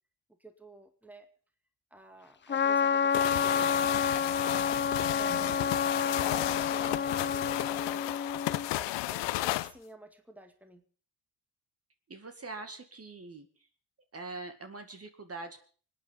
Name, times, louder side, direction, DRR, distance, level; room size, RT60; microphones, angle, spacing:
voice 1, 0.4-1.3 1.9-4.2 4.9-6.0 6.6-8.2 8.8-10.8, right 2 dB, 5° right, 6 dB, 2.1 m, -52 dB
Trumpet, 2.5-8.7, left 6 dB, 25° left, 0.6 m, -29 dB
sound 1, 3.1-9.7, left 17 dB, 80° left, 0.8 m, -33 dB
voice 2, 5.3-5.7 12.1-13.5 14.1-15.6, right 3 dB, 35° right, 7 dB, 2.1 m, -43 dB
24.5 x 9.2 x 5.2 m, 0.42 s
supercardioid pair, 70°, 42 cm